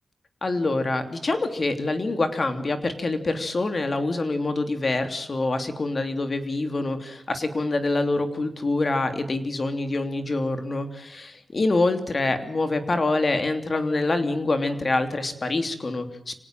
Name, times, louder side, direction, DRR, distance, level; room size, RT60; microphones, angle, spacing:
voice 1, 0.4-16.4, left 2 dB, 45° left, 8 dB, 3.1 m, -25 dB
26.0 x 18.5 x 7.6 m, 0.72 s
cardioid pair, 70°, 0 cm